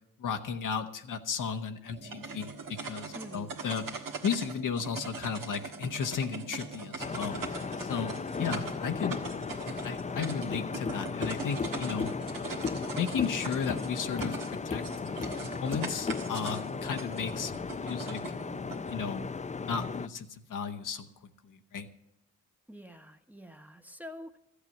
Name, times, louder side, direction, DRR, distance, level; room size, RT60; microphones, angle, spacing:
voice 1, 0.2-9.2 9.8-12.1 12.9-14.8 15.3-18.2 18.8-19.3 19.6-21.1 21.4-21.9, left 6 dB, 65° left, 6 dB, 1.1 m, -34 dB
sound 1, 1.9-18.9, right 4 dB, 75° right, 1.6 m, -42 dB
voice 2, 3.1-3.6 22.7-24.4, equal, 5° right, 7 dB, 1.1 m, -46 dB
sound 2, 7.0-20.1, left 5 dB, 20° left, 0.5 m, -36 dB
13.5 x 8.2 x 7.4 m, 0.83 s
supercardioid pair, 50°, 33 cm